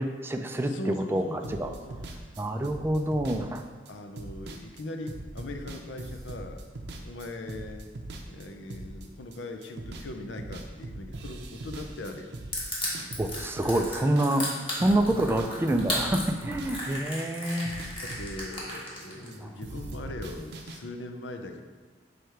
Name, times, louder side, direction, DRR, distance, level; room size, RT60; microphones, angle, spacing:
voice 1, 0.0-1.7 2.4-3.6 13.2-17.7 19.2-19.5, right 1 dB, 15° right, 5 dB, 0.3 m, -27 dB
voice 2, 0.6-2.3 3.9-6.6 7.0-7.9 8.3-12.3 18.0-21.6, left 2 dB, 85° left, 5 dB, 0.6 m, -40 dB
sound 1, 1.4-10.1 10.4-14.5 14.8-19.4 19.6-20.8, right 2 dB, 70° right, 0.6 m, -41 dB
Crushing, 12.5-19.3, left 1 dB, 30° left, 1.5 m, -34 dB
6.3 x 3.4 x 4.5 m, 1.4 s
head